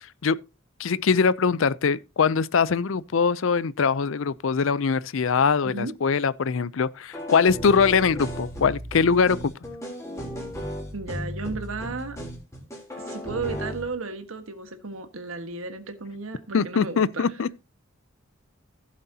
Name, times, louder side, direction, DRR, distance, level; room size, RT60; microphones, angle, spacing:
voice 1, 0.8-9.5 16.5-17.5, left 5 dB, 70° left, 0.5 m, -22 dB
sound 1, 7.1-13.9, equal, 15° left, 3.4 m, -35 dB
voice 2, 10.9-12.2 13.0-17.3, right 3 dB, 85° right, 1.5 m, -34 dB
15.5 x 7.5 x 2.8 m
head